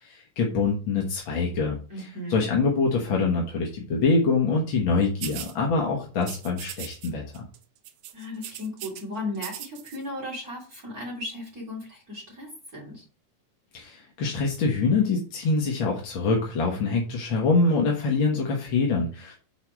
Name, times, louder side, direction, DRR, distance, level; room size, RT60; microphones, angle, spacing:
voice 1, 0.0-7.4 13.7-19.3, left 4 dB, 55° left, -1 dB, 1.6 m, -25 dB
voice 2, 1.9-2.5 8.1-13.0, left 1 dB, 30° right, -3 dB, 3.1 m, -36 dB
sound 1, 5.2-5.5 6.2-7.1 7.3-7.6 7.8-9.0 9.4-10.0, right 11 dB, 80° right, 2.2 m, -38 dB
6.5 x 4.6 x 6.0 m, 0.36 s
omnidirectional pair, 3.7 m